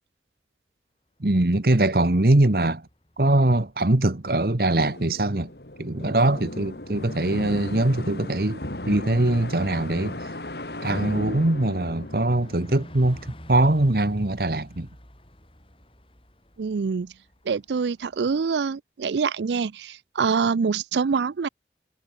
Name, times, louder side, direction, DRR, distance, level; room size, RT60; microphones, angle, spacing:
Bus, 1.2-18.3, equal, 30° left, 6.5 m, -52 dB
voice 1, 1.2-2.8 3.2-5.5 5.8-10.3 10.8-14.9, right 2 dB, 55° right, 1.3 m, -22 dB
sound 1, 4.7-13.6, left 1 dB, 65° left, 3.5 m, -36 dB
voice 2, 16.6-17.1 17.5-21.5, right 5 dB, 80° right, 0.4 m, -25 dB
head